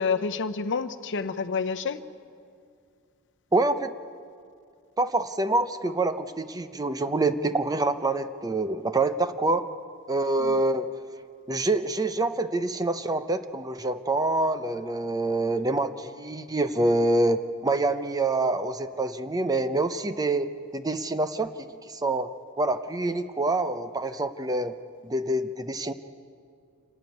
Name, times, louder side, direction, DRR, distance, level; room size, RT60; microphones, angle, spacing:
voice 1, 0.0-2.0 10.4-10.5, left 5 dB, 55° left, 12 dB, 0.8 m, -28 dB
voice 2, 3.5-3.9 5.0-9.6 10.1-10.9 11.5-22.3 22.6-24.8 25.0-25.9, right 2 dB, 15° right, 10 dB, 0.6 m, -26 dB
26.5 x 12.5 x 9.4 m, 2.3 s
head